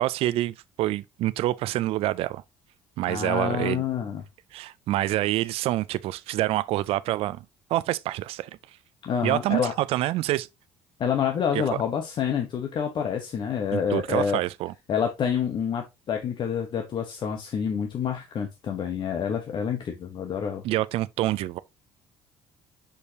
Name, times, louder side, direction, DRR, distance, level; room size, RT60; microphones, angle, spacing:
voice 1, 0.0-2.4 3.0-3.8 4.5-7.4 7.7-8.5 9.2-10.5 11.5-11.8 13.7-14.7 20.6-21.6, right 15 dB, 70° right, 0.4 m, -26 dB
voice 2, 3.1-4.2 9.0-9.7 11.0-14.4 14.9-20.6, left 7 dB, 50° left, 1.1 m, -28 dB
6.4 x 5.4 x 2.8 m
cardioid pair, 95°, 11 cm